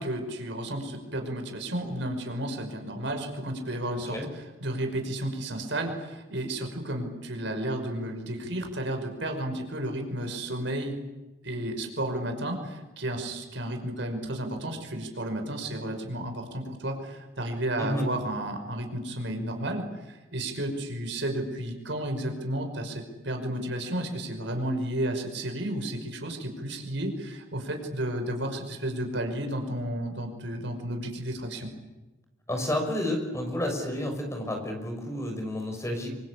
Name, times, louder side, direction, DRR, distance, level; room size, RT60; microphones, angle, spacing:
voice 1, 0.0-11.0 11.4-31.7, right 1 dB, 65° right, 4 dB, 5.7 m, -32 dB
voice 2, 32.5-36.2, left 1 dB, 15° left, 3 dB, 6.2 m, -30 dB
27.0 x 25.5 x 8.6 m, 1.1 s
head